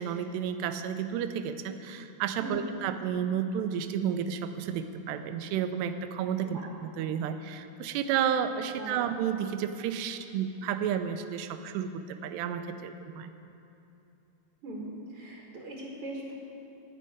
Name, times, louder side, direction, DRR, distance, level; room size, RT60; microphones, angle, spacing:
voice 1, 0.0-13.3, right 8 dB, 90° right, 9 dB, 2.7 m, -32 dB
voice 2, 2.4-2.8 6.4-6.6 8.7-9.1 14.6-16.3, right 1 dB, 60° right, -3 dB, 1.5 m, -40 dB
13.5 x 5.6 x 9.3 m, 2.9 s
omnidirectional pair, 4.8 m